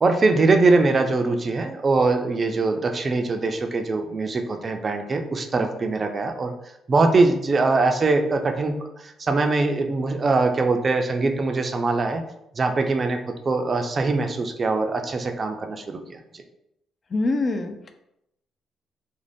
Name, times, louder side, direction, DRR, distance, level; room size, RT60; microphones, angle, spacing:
voice 1, 0.0-6.5 6.9-8.8 9.0-12.2 12.6-13.2 13.5-16.2, right 3 dB, 35° right, 5 dB, 0.3 m, -22 dB
voice 2, 17.1-17.9, left 2 dB, 40° left, 6 dB, 0.3 m, -24 dB
2.5 x 2.0 x 3.3 m, 0.82 s
cardioid pair, 90°, 0 cm